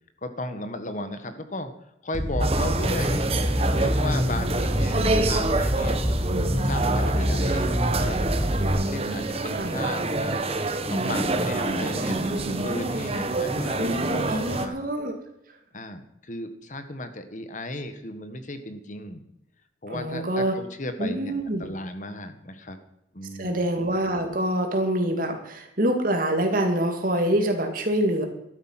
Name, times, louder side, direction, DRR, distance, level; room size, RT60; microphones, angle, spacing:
voice 1, 0.2-1.7 2.0-3.3 3.8-6.1 6.5-8.2 8.7-10.4 10.9-14.7 15.7-19.2 19.8-21.3 21.6-22.8 23.1-23.7, left 1 dB, 45° left, 9 dB, 1.5 m, -35 dB
sound 1, 2.1-8.7, equal, 5° right, 2.2 m, -26 dB
sound 2, 2.4-14.7, right 2 dB, 35° right, 1.3 m, -27 dB
voice 2, 8.6-9.3 9.5-9.7 13.8-15.1 19.9-20.6 21.0-21.7 23.4-28.3, right 1 dB, 50° right, 4 dB, 2.6 m, -26 dB
13.5 x 12.5 x 5.9 m, 0.85 s
head